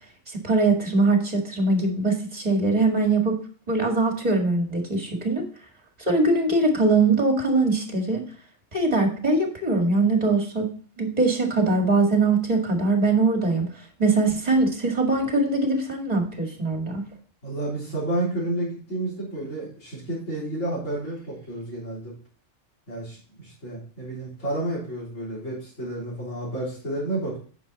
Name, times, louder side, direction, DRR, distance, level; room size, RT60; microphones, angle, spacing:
voice 1, 0.3-3.4 3.7-5.5 6.1-8.3 8.7-10.7 11.0-13.7 14.0-17.0, right 3 dB, 30° right, 3 dB, 2.0 m, -22 dB
voice 2, 17.4-22.1 22.9-27.4, right 1 dB, 70° left, -8 dB, 3.9 m, -30 dB
9.4 x 6.2 x 4.0 m, 0.43 s
omnidirectional pair, 1.3 m